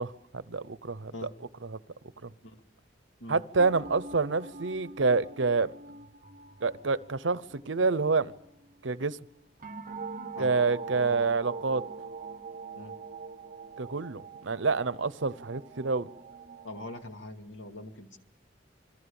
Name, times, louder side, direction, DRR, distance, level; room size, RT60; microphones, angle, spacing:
voice 1, 0.0-1.3 1.6-1.8 2.2-2.3 3.3-5.7 6.6-8.3 8.8-9.2 10.4-11.8 13.8-16.1, right 4 dB, 85° right, 0.8 m, -28 dB
sound 1, 3.6-8.9 9.6-17.0, right 4 dB, 45° right, 1.1 m, -44 dB
voice 2, 16.6-18.2, left 2 dB, 85° left, 2.4 m, -43 dB
27.0 x 22.0 x 7.1 m
head